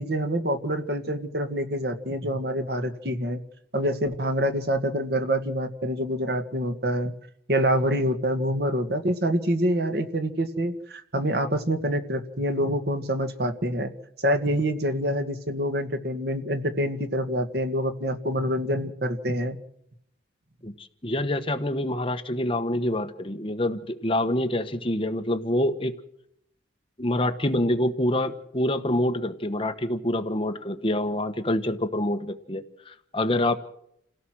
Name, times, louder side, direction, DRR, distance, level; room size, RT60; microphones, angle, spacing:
voice 1, 0.0-3.4 3.7-7.1 7.5-13.9 14.2-19.6, equal, 55° right, 7 dB, 1.9 m, -26 dB
voice 2, 20.6-25.9 27.0-33.6, left 1 dB, 30° left, 7 dB, 1.3 m, -26 dB
29.0 x 17.0 x 6.3 m, 0.74 s
head